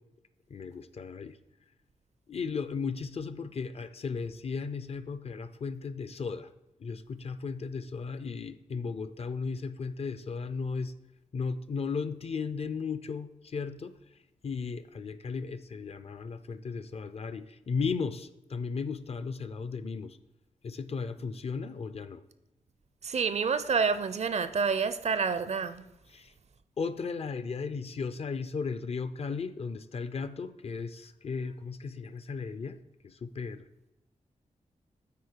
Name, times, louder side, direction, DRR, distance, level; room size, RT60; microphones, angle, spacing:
voice 1, 0.5-1.3 2.3-6.5 6.8-10.9 11.3-13.9 14.4-20.2 20.6-22.2 26.1-26.3 26.8-32.8 33.0-33.6, left 5 dB, 50° left, 0.5 m, -35 dB
voice 2, 23.0-25.9, right 5 dB, 55° right, 0.5 m, -28 dB
8.4 x 4.5 x 4.5 m
wide cardioid pair, 85°, 14 cm